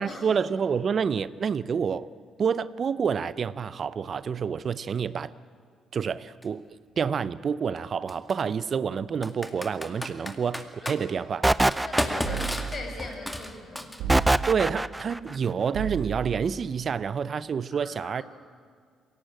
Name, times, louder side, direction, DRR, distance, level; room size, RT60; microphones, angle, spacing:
voice 1, 0.0-2.1 2.4-5.3 5.9-6.6 7.0-11.4 14.4-18.2, right 6 dB, 50° right, 0.6 m, -28 dB
Computer keyboard, 6.4-6.5 8.1-8.3 9.2-11.0 11.6-14.3, left 1 dB, 10° left, 2.2 m, -33 dB
sound 1, 11.4-12.7 14.1-15.2, right 2 dB, 15° right, 0.6 m, -23 dB
voice 2, 11.8-14.0 17.7-18.2, left 3 dB, 50° left, 7.3 m, -40 dB
sound 2, 12.2-13.0 14.0-14.7 15.7-16.5, right 8 dB, 85° right, 2.1 m, -34 dB
21.5 x 18.0 x 9.1 m
supercardioid pair, 65°, 0 cm